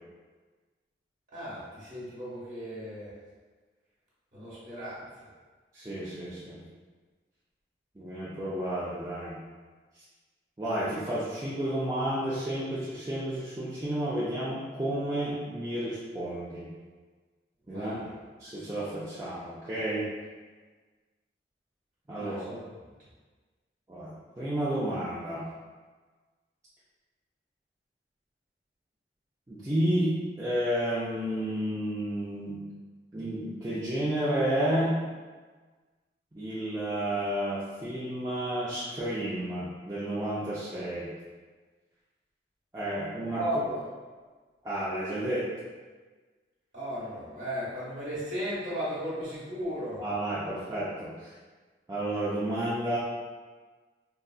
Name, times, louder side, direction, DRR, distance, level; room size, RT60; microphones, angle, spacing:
voice 1, 1.3-3.1 4.3-5.0 17.7-18.1 22.1-22.6 43.4-43.8 46.7-50.0, equal, 45° right, -9 dB, 1.4 m, -35 dB
voice 2, 5.7-6.6 8.0-9.4 10.6-16.7 17.7-17.9 18.4-20.0 22.1-22.6 23.9-25.4 29.5-32.6 33.1-35.0 36.3-41.1 42.7-43.4 44.6-45.4 50.0-51.3 51.9-53.0, right 1 dB, 20° right, -10 dB, 0.4 m, -31 dB
3.7 x 2.4 x 2.3 m, 1.4 s
head